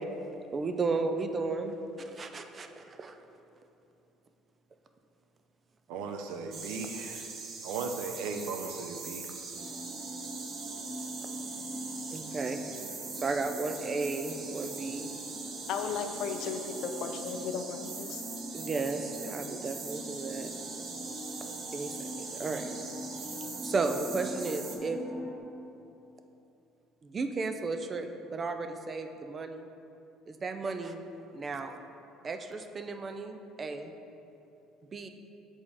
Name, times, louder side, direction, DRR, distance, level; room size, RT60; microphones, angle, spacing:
voice 1, 0.5-3.2 11.2-11.4 12.1-12.6 13.1-15.1 18.5-20.5 21.7-22.7 23.6-25.0 27.0-29.7 30.3-31.0 31.3-31.8 32.2-33.9 34.9-35.1, right 3 dB, 30° right, 7 dB, 0.4 m, -34 dB
voice 2, 5.9-7.3 7.6-9.3, right 4 dB, 85° right, 6 dB, 0.5 m, -37 dB
sound 1, 6.5-24.8, right 4 dB, 45° right, 0.8 m, -42 dB
sound 2, 9.6-25.4, equal, 15° right, 0.8 m, -43 dB
voice 3, 15.7-18.2, left 6 dB, 65° left, 6 dB, 0.5 m, -35 dB
7.4 x 3.5 x 4.9 m, 2.8 s
cardioid pair, 125°, 0 cm